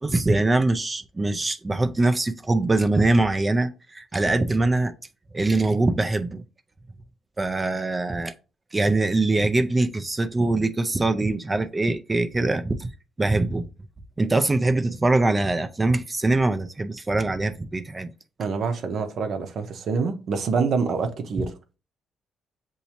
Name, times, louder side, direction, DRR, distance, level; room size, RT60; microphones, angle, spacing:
voice 1, 0.0-4.9 5.3-6.4 7.4-8.3 8.7-12.9 13.2-13.7 14.2-18.1, right 2 dB, 20° right, 0.4 m, -23 dB
voice 2, 18.4-21.5, right 5 dB, 65° right, 0.8 m, -26 dB
6.8 x 2.7 x 2.9 m
cardioid pair, 90°, 0 cm